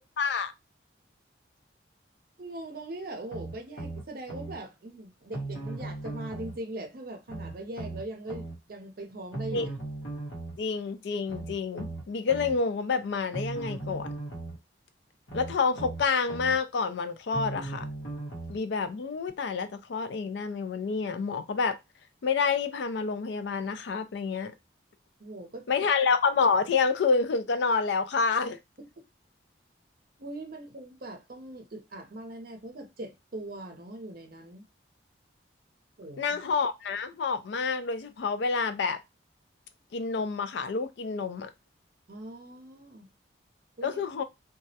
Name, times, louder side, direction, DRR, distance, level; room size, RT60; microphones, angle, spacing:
voice 1, 0.2-0.5 9.5-9.7 10.6-14.1 15.3-17.9 18.5-21.8 22.2-24.5 25.7-28.6 36.2-39.0 39.9-41.5 43.8-44.2, left 5 dB, 65° left, 0.4 m, -28 dB
voice 2, 2.4-9.7 25.2-25.7 30.2-34.6 36.0-36.4 42.1-43.1 43.8-44.2, right 1 dB, 50° right, 0.6 m, -41 dB
sound 1, 3.3-4.6 5.3-6.6 7.3-8.6 9.3-10.6 11.3-12.6 13.3-14.6 15.3-16.6 17.3-18.6 19.3-19.4, right 2 dB, 85° left, 1.0 m, -37 dB
2.3 x 2.0 x 2.7 m
head